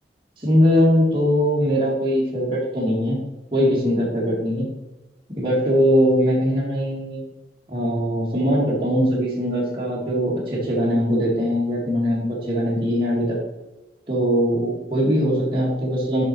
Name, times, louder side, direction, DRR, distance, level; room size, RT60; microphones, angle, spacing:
voice 1, 0.4-3.2 3.5-4.7 5.3-7.2 7.7-13.4 14.1-16.2, equal, 30° right, -7 dB, 2.0 m, -21 dB
7.4 x 5.8 x 4.3 m, 1.0 s
head